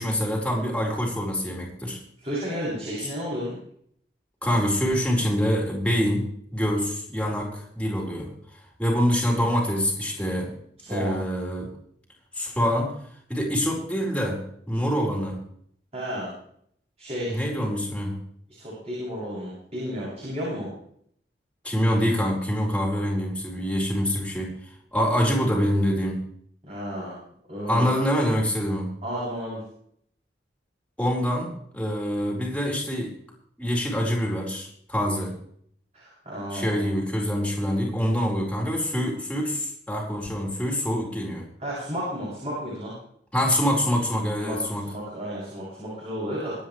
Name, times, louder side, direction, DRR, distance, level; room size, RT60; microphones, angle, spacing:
voice 1, 0.0-2.0 4.4-8.3 8.8-10.5 10.9-11.7 12.3-12.9 13.3-14.4 14.7-15.4 17.3-18.2 21.6-24.5 24.9-26.2 27.6-28.9 31.0-33.1 33.6-35.3 36.5-41.5 43.3-44.8, equal, 5° left, -2 dB, 4.4 m, -25 dB
voice 2, 2.2-3.6 10.8-11.1 15.9-16.3 17.0-17.4 18.5-20.7 26.6-27.2 27.5-27.9 29.0-29.6 35.9-36.9 41.6-42.9 44.4-44.6 44.9-46.5, equal, 35° right, -8 dB, 7.7 m, -32 dB
25.5 x 9.5 x 3.3 m, 0.65 s
head